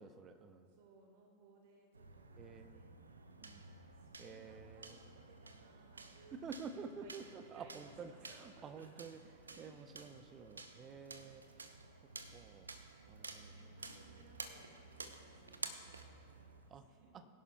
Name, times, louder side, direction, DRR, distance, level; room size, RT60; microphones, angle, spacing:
voice 1, 0.0-0.7 2.4-2.8 3.4-3.7 4.2-5.1 6.3-9.2 9.6-11.4 12.3-12.7 13.1-13.8 16.7-16.8, right 5 dB, 25° right, 9 dB, 0.7 m, -50 dB
voice 2, 0.7-3.4 4.0-9.9 11.1-11.5 13.0-17.3, right 2 dB, 50° right, 1 dB, 1.8 m, -64 dB
sound 1, 1.9-16.7, right 3 dB, 75° right, 0.7 m, -52 dB
21.0 x 11.0 x 2.4 m, 2.5 s
figure-of-eight pair, 90°, 0 cm